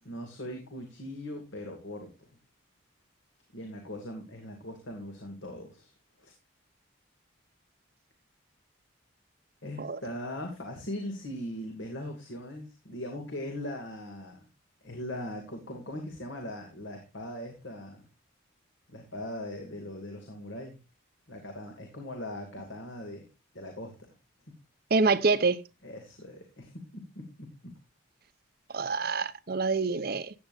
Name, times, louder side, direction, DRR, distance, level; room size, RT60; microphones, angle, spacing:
voice 1, 0.0-2.3 3.5-5.9 6.2-6.3 9.6-14.5 14.8-18.1 18.9-20.8 21.3-23.3 23.5-23.9 24.5-24.6 25.8-27.7, left 1 dB, 70° left, 2.6 m, -40 dB
voice 2, 24.9-25.6 28.7-30.3, right 4 dB, 50° right, 0.7 m, -26 dB
15.5 x 9.2 x 2.7 m
head